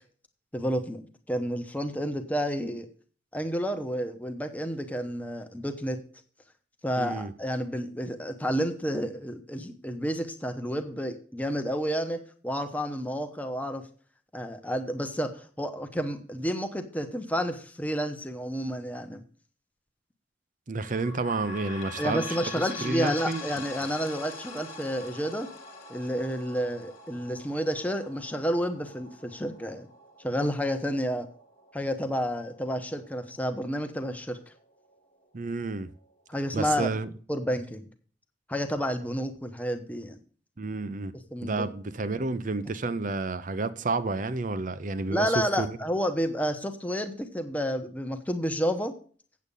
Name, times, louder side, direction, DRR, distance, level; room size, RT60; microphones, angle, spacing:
voice 1, 0.5-2.9 3.3-6.0 6.8-13.8 14.3-19.2 22.0-25.5 25.9-29.9 30.2-31.3 31.7-34.4 36.3-36.9 37.3-37.8 38.5-40.2 41.3-41.7 45.1-48.9, equal, 10° left, 0.9 m, -30 dB
voice 2, 7.0-7.3 20.7-22.4 22.8-23.4 35.3-35.9 36.5-37.1 40.6-41.1 41.4-45.8, right 3 dB, 45° right, 0.6 m, -30 dB
sound 1, 20.8-34.0 34.5-34.6 34.9-35.0 35.8-35.9, left 2 dB, 40° left, 1.5 m, -44 dB
8.4 x 7.8 x 5.4 m
head